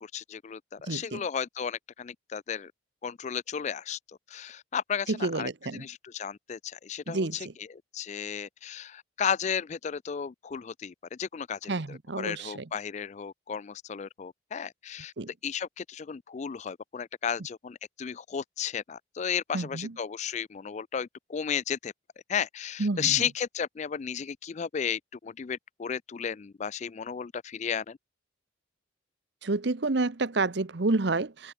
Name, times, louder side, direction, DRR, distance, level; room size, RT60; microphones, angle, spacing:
voice 1, 0.0-2.7 3.0-15.1 15.4-21.9 22.3-28.0, left 7 dB, 35° left, 0.3 m, -34 dB
voice 2, 0.9-1.2 5.1-5.8 7.1-7.4 11.7-12.6 15.2-15.3 19.5-19.9 22.8-23.2 29.4-31.5, right 3 dB, 60° right, 0.9 m, -29 dB
open air
head